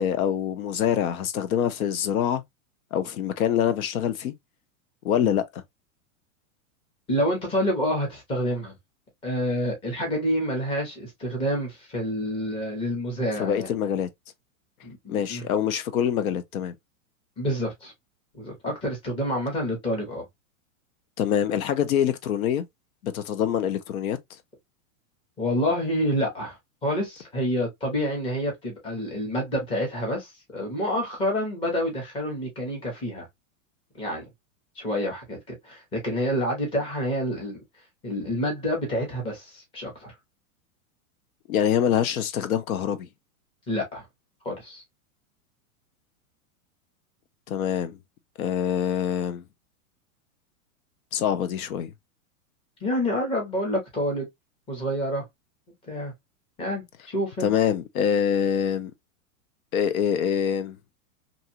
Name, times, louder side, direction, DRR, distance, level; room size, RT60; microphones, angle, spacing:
voice 1, 0.0-2.4 2.9-4.3 5.0-5.6 13.4-14.1 15.1-16.7 21.2-22.6 23.0-24.2 41.5-43.1 47.5-48.0 48.4-49.4 51.1-51.9 57.4-58.9 59.7-60.8, left 9 dB, 80° left, 0.7 m, -25 dB
voice 2, 7.1-8.7 9.2-13.7 14.8-15.5 17.4-17.9 18.3-20.3 25.4-33.3 34.0-34.2 34.8-37.6 38.0-40.1 43.7-44.1 44.4-44.8 52.8-54.3 54.7-55.3 55.9-56.1 56.6-57.5, equal, 15° left, 0.8 m, -28 dB
2.7 x 2.3 x 2.7 m
supercardioid pair, 160°, 42 cm